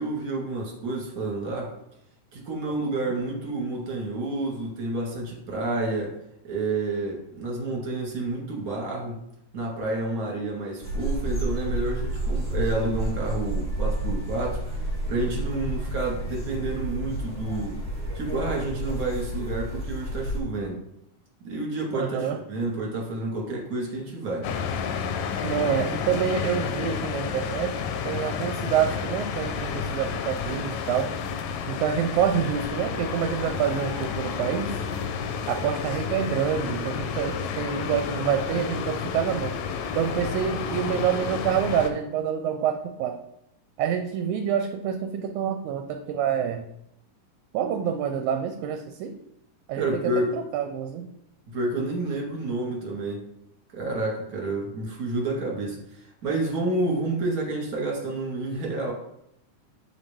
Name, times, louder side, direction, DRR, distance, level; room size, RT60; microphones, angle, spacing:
voice 1, 0.0-1.7 2.3-6.2 6.4-9.2 9.5-17.8 18.1-20.8 21.4-24.5 49.7-50.3 51.5-53.2 53.7-58.9, right 2 dB, 35° right, -3 dB, 1.8 m, -29 dB
sound 1, 10.8-20.4, right 1 dB, 15° left, 0.9 m, -30 dB
voice 2, 21.9-22.4 25.4-31.1 31.7-34.7 35.5-39.6 40.0-43.2 43.8-46.7 47.5-49.1 49.7-51.1, right 8 dB, 80° right, 5 dB, 1.9 m, -27 dB
sound 2, 24.4-41.9, left 6 dB, 80° left, 1.8 m, -30 dB
7.3 x 4.1 x 3.4 m, 0.79 s
omnidirectional pair, 3.6 m